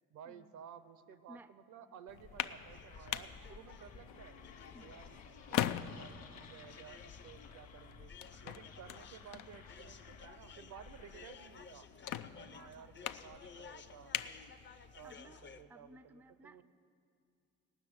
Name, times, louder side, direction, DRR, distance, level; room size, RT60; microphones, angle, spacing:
voice 1, 0.1-4.4 4.8-5.2 5.5-8.1 8.4-11.9 12.4-14.1 15.0-16.6, right 8 dB, 80° right, 12 dB, 0.8 m, -55 dB
sound 1, 2.1-15.2, left 11 dB, 90° left, 0.5 m, -44 dB
sound 2, 2.2-11.6, left 5 dB, 60° left, 1.2 m, -56 dB
sound 3, 2.7-15.6, left 5 dB, 40° left, 0.6 m, -56 dB
voice 2, 12.4-13.1 15.0-15.4 15.7-16.6, equal, 5° right, 13 dB, 0.4 m, -58 dB
18.5 x 6.1 x 8.8 m, 2.3 s
cardioid pair, 90°, 30 cm